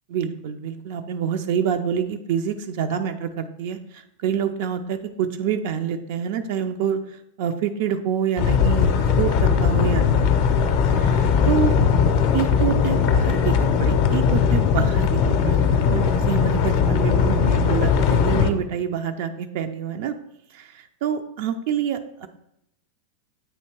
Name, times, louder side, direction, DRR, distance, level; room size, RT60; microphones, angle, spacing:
voice 1, 0.1-10.5 10.9-11.8 12.3-15.1 15.4-20.1 20.5-22.3, right 8 dB, 50° right, 7 dB, 0.3 m, -27 dB
sound 1, 8.4-18.5, left 6 dB, 45° left, 0.5 m, -19 dB
7.6 x 2.8 x 4.4 m, 0.79 s
figure-of-eight pair, 90°, 0 cm